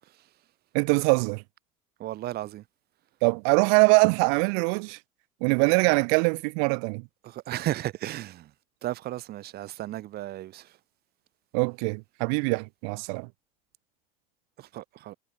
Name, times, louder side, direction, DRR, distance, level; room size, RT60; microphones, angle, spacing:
voice 1, 0.7-1.4 3.2-5.0 5.4-7.0 11.5-13.3, right 40 dB or more, 75° right, 4.9 m, -23 dB
voice 2, 2.0-2.6 7.2-8.5 8.8-10.7 14.6-15.1, right 14 dB, 55° right, 4.7 m, -34 dB
supercardioid pair, 90°, 19 cm